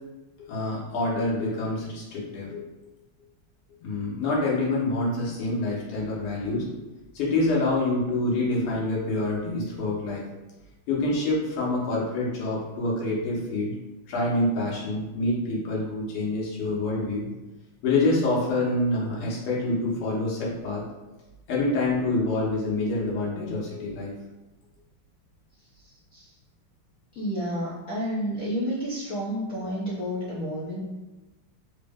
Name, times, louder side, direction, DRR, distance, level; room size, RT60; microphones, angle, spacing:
voice 1, 0.5-2.7 3.8-6.7 7.2-10.2 10.9-13.7 14.1-17.3 17.8-20.8 21.5-24.1, left 2 dB, 90° left, -5 dB, 1.9 m, -26 dB
voice 2, 25.8-26.3 27.1-30.8, equal, 65° left, -8 dB, 0.8 m, -30 dB
4.4 x 2.0 x 3.4 m, 1.1 s
omnidirectional pair, 2.4 m